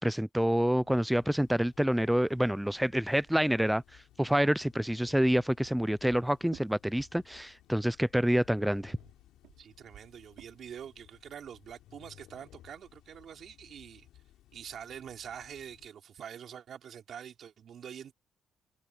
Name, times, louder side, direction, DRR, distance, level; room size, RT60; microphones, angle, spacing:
voice 1, 0.0-9.0, equal, 5° right, 0.3 m, -27 dB
sound 1, 0.8-15.9, left 13 dB, 90° left, 3.7 m, -59 dB
sound 2, 0.8-3.4 5.1-7.6 8.5-11.1, right 13 dB, 85° right, 5.3 m, -56 dB
voice 2, 9.6-14.1 14.5-18.1, right 8 dB, 65° right, 2.9 m, -45 dB
cardioid pair, 90°, 0 cm